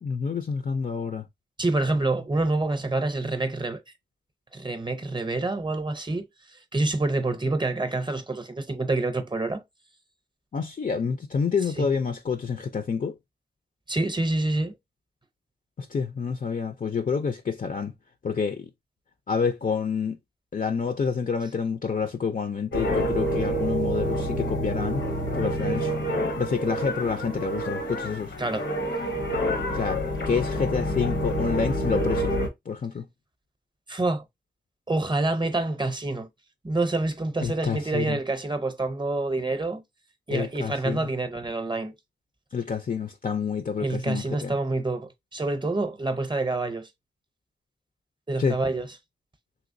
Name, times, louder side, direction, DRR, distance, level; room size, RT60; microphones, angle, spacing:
voice 1, 0.0-1.2 10.5-13.2 15.8-17.9 18.2-18.7 19.3-20.2 20.5-25.0 25.3-25.9 26.4-28.3 29.7-32.4 32.7-33.1 37.4-38.2 40.3-41.1 42.5-44.6 48.4-48.6, left 6 dB, 50° left, 0.4 m, -28 dB
voice 2, 1.6-3.8 4.5-6.3 6.7-9.6 11.8-11.9 13.9-14.8 28.4-28.7 33.9-34.2 34.9-36.3 36.6-39.8 40.3-41.9 43.8-46.9 48.3-48.9, right 2 dB, 25° right, 0.6 m, -27 dB
sound 1, 22.7-32.5, equal, 80° left, 0.8 m, -28 dB
3.0 x 3.0 x 2.6 m
wide cardioid pair, 85°, 18 cm